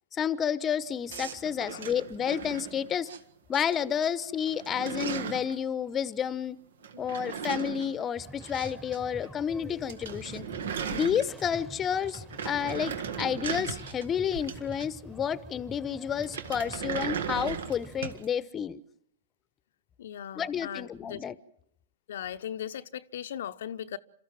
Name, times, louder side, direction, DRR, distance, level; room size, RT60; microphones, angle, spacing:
voice 1, 0.1-3.1 3.5-6.6 7.0-10.4 10.9-18.8 20.4-21.4, left 8 dB, 25° left, 0.9 m, -30 dB
sound 1, 1.1-3.2 3.5-4.1 4.4-5.5 6.8-9.0 9.2-9.3 9.6-9.7 9.9-11.7 12.0-15.1 16.2-18.3, right 7 dB, 75° right, 1.6 m, -37 dB
sound 2, 8.2-18.2, left 1 dB, ahead, 1.2 m, -47 dB
voice 2, 20.0-21.2 22.1-24.0, left 10 dB, 70° left, 0.8 m, -38 dB
28.0 x 14.0 x 7.5 m
hypercardioid pair, 115°, 0 cm